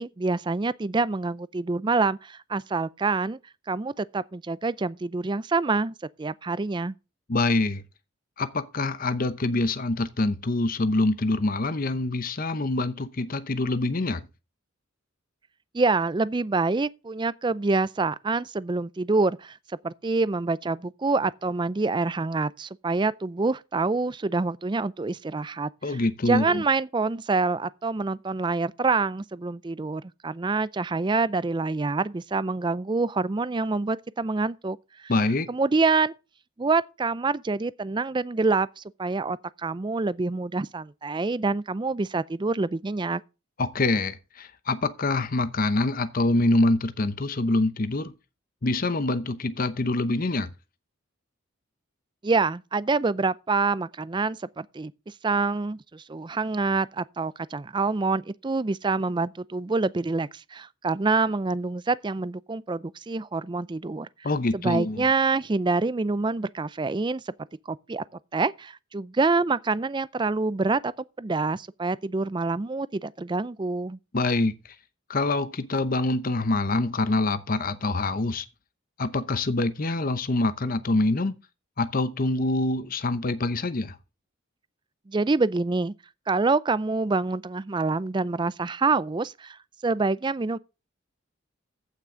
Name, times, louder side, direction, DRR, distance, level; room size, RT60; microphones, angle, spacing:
voice 1, 0.0-3.4 3.7-6.9 15.7-19.6 19.8-35.1 35.5-36.1 36.6-43.2 52.2-54.9 55.2-64.1 64.5-67.3 67.7-68.0 68.3-70.9 71.2-74.0 85.1-85.9 86.3-90.6, right 3 dB, 25° right, 0.4 m, -26 dB
voice 2, 7.3-7.8 8.4-14.2 25.8-26.6 35.1-35.5 43.6-48.1 48.6-50.5 64.2-65.0 74.1-74.5 75.1-78.5 79.0-81.3 81.8-84.0, left 2 dB, 45° left, 0.8 m, -25 dB
15.0 x 5.9 x 3.7 m
head